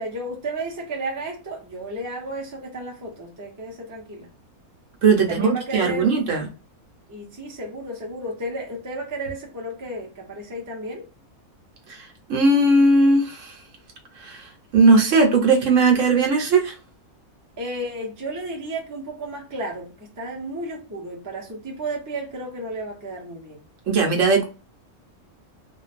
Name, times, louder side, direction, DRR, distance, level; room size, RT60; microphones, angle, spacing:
voice 1, 0.0-4.3 5.1-6.1 7.1-11.0 17.6-23.7, right 1 dB, 20° right, 0.5 m, -33 dB
voice 2, 5.0-6.5 12.3-13.5 14.2-14.4 14.7-16.7 23.9-24.4, right 3 dB, 65° right, 1.0 m, -18 dB
2.5 x 2.2 x 2.4 m
omnidirectional pair, 1.5 m